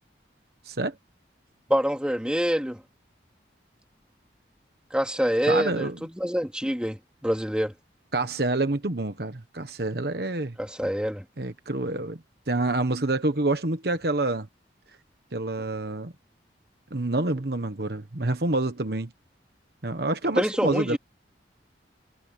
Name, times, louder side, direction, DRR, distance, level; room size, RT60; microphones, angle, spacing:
voice 1, 0.6-1.0 5.5-6.0 8.1-10.6 11.4-12.2 12.5-14.5 15.3-16.1 16.9-19.1 19.8-21.0, right 2 dB, 55° right, 1.3 m, -27 dB
voice 2, 1.7-2.8 4.9-7.7 10.6-11.2 20.4-21.0, equal, 5° right, 3.2 m, -26 dB
head